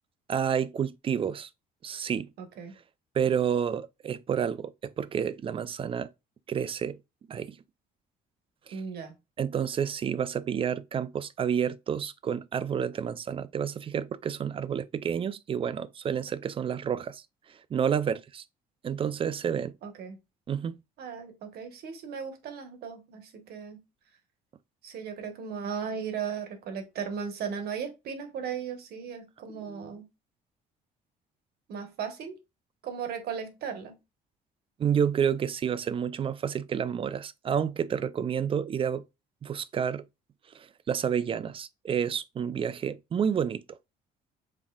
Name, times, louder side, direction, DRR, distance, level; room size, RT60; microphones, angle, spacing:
voice 1, 0.3-1.5 1.8-2.3 3.2-4.7 5.0-6.1 6.5-7.0 7.3-7.5 8.7-8.8 9.4-17.2 17.7-18.4 18.8-19.7 20.5-20.7 29.7-29.9 34.8-39.0 39.4-40.0 40.9-43.6, right 8 dB, 30° right, 0.4 m, -29 dB
voice 2, 2.4-2.7 8.7-9.1 19.8-20.2 21.0-23.8 24.8-30.0 31.7-32.4 32.8-33.9, right 7 dB, 70° right, 1.2 m, -36 dB
5.4 x 3.7 x 2.3 m
cardioid pair, 110°, 17 cm